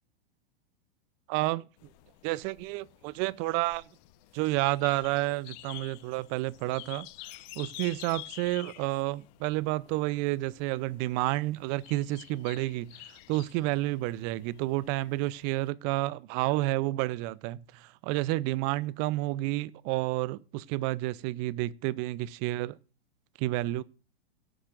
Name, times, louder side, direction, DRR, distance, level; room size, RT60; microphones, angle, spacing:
voice 1, 1.3-1.6 2.2-3.8 4.3-7.1 7.6-22.8 23.4-23.8, right 18 dB, 40° right, 0.6 m, -30 dB
sound 1, 1.8-15.7, left 18 dB, 45° left, 0.9 m, -50 dB
17.5 x 8.7 x 2.5 m
hypercardioid pair, 105°, 30 cm